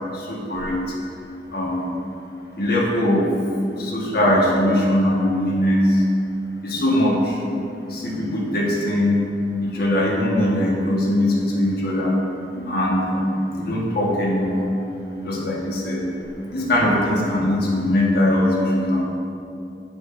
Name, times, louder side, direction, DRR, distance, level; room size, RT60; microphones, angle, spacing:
voice 1, 0.1-0.8 1.5-1.9 2.6-3.3 3.8-6.0 6.6-7.3 7.9-9.2 9.6-12.1 12.5-14.7 15.2-16.0 16.5-19.1, left 1 dB, 60° left, -4 dB, 1.2 m, -21 dB
8.5 x 6.0 x 2.5 m, 2.6 s
head